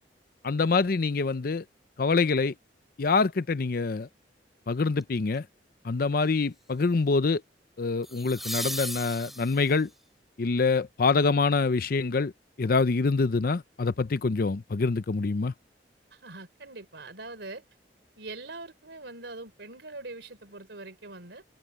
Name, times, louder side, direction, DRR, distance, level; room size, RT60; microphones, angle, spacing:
voice 1, 0.4-1.6 2.0-2.5 3.0-4.1 4.7-5.5 5.8-7.4 7.8-9.9 10.4-12.3 12.6-15.5, left 4 dB, 55° left, 0.6 m, -25 dB
sound 1, 5.0-5.3 8.0-9.9 12.8-12.9, equal, ahead, 2.8 m, -36 dB
voice 2, 16.1-17.6 18.2-21.4, right 2 dB, 75° right, 3.6 m, -42 dB
head